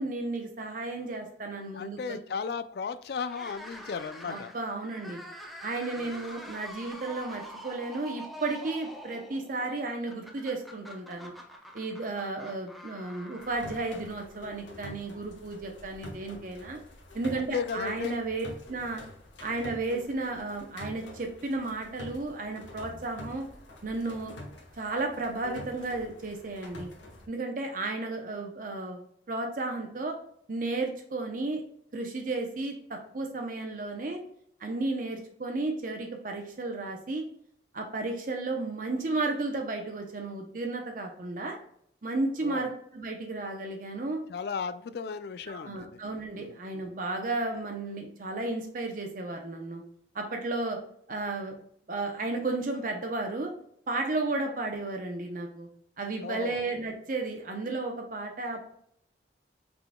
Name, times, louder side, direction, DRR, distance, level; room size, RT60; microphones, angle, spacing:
voice 1, 0.0-2.2 4.3-5.2 5.6-11.3 11.7-16.8 17.1-19.0 19.4-23.5 23.8-24.3 24.8-26.9 27.3-30.2 30.5-31.6 31.9-34.2 34.6-37.3 37.7-41.6 42.0-44.2 45.5-49.8 50.1-50.8 51.1-51.6 51.9-53.5 53.9-55.7 56.0-58.7, right 2 dB, 45° right, 3 dB, 0.7 m, -33 dB
voice 2, 1.7-4.5 6.0-6.2 17.4-18.2 42.4-42.7 44.3-45.9 46.4-46.6 56.2-56.6, left 6 dB, 55° left, 12 dB, 0.3 m, -35 dB
sound 1, 3.3-14.5, equal, ahead, 0.6 m, -46 dB
sound 2, 13.4-27.3, left 1 dB, 90° left, 1.3 m, -47 dB
5.8 x 3.8 x 2.2 m, 0.67 s
head